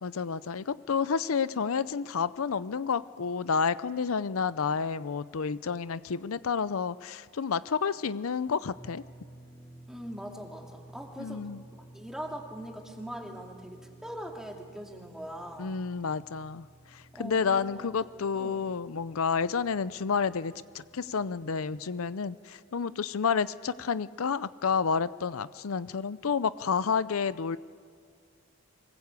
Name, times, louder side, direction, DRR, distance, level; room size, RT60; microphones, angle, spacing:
voice 1, 0.0-9.0 11.2-11.6 15.6-16.7 16.9-27.6, left 6 dB, 90° left, 16 dB, 0.6 m, -30 dB
sound 1, 8.7-21.5, right 1 dB, 15° left, 3.5 m, -54 dB
voice 2, 9.9-11.5 11.9-15.8 17.1-17.9 18.3-18.7, equal, 5° right, 1 dB, 2.5 m, -41 dB
24.5 x 21.0 x 8.2 m, 2.1 s
head